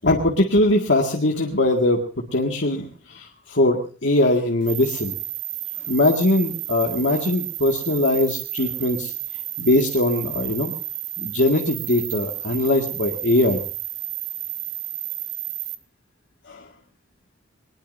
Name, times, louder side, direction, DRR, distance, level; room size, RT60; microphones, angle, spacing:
voice 1, 0.0-5.1 5.8-9.1 9.6-10.7 11.2-13.6 16.5-16.7, left 1 dB, 70° left, 0 dB, 2.1 m, -21 dB
sound 1, 4.6-15.8, right 14 dB, 75° right, 1.5 m, -31 dB
22.0 x 20.5 x 2.7 m, 0.39 s
head